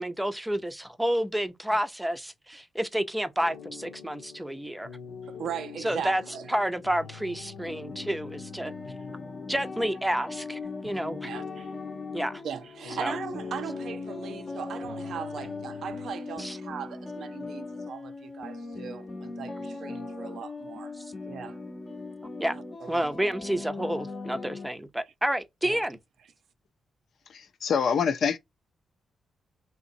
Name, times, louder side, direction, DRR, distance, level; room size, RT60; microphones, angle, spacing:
voice 1, 0.0-4.9 5.8-6.2 6.5-8.7 9.5-11.3 12.1-12.4 13.0-13.2 16.4-16.6 21.0-21.1 22.4-22.6 22.9-26.0, right 1 dB, 5° right, 0.6 m, -30 dB
sound 1, 3.4-16.1, left 6 dB, 85° left, 0.9 m, -45 dB
voice 2, 5.3-6.5 11.2-11.7 12.4-20.9 21.3-21.6 22.5-23.1 25.6-25.8, right 8 dB, 70° right, 0.5 m, -39 dB
sound 2, 7.6-24.7, left 3 dB, 30° left, 0.8 m, -39 dB
voice 3, 27.3-28.4, left 6 dB, 65° left, 0.6 m, -25 dB
3.8 x 2.9 x 2.6 m
cardioid pair, 110°, 0 cm